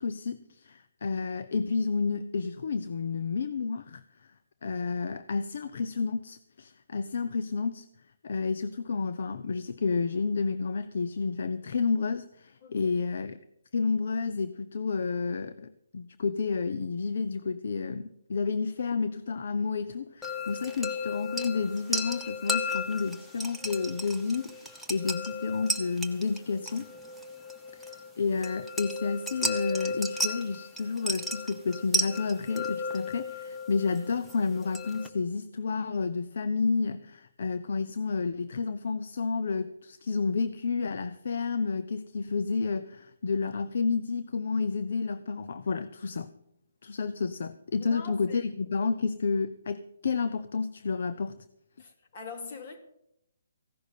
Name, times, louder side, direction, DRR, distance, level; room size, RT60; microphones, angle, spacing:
voice 1, 0.0-4.0 4.6-7.9 8.2-13.4 13.7-26.9 27.7-46.3 46.8-51.4, left 4 dB, 60° left, 0.7 m, -30 dB
sound 1, 20.2-35.1, left 1 dB, ahead, 1.0 m, -34 dB
voice 2, 47.8-48.4 51.8-52.8, left 4 dB, 45° left, 2.7 m, -43 dB
15.5 x 6.3 x 9.2 m
hypercardioid pair, 150°, 0 cm